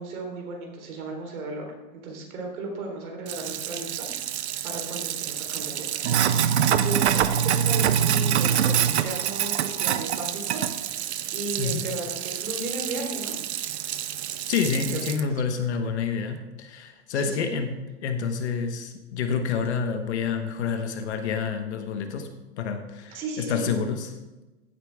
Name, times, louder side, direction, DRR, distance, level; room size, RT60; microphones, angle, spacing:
voice 1, 0.0-1.7 1.9-6.0 6.3-11.1 11.3-13.3 15.2-15.3 17.1-17.5 23.1-23.7, right 2 dB, 60° right, 1 dB, 3.9 m, -35 dB
Sink (filling or washing), 3.3-15.2, right 9 dB, 45° right, 0.5 m, -26 dB
voice 2, 14.5-24.2, left 6 dB, 45° left, 7 dB, 1.1 m, -28 dB
15.0 x 8.4 x 3.6 m, 1.1 s
supercardioid pair, 175°, 47 cm